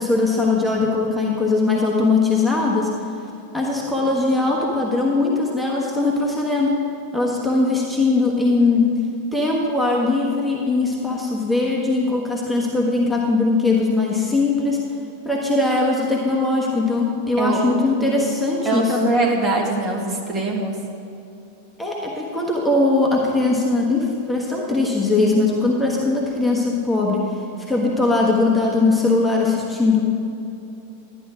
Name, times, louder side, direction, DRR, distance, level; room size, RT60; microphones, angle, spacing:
voice 1, 0.0-3.0 3.5-6.8 7.1-9.0 9.3-14.8 15.2-19.1 21.8-27.4 27.7-30.0, left 3 dB, 5° left, -3 dB, 1.3 m, -20 dB
voice 2, 17.4-18.3 18.7-20.8, right 3 dB, 30° right, -1 dB, 1.8 m, -23 dB
12.5 x 10.5 x 3.7 m, 2.8 s
figure-of-eight pair, 90°, 0 cm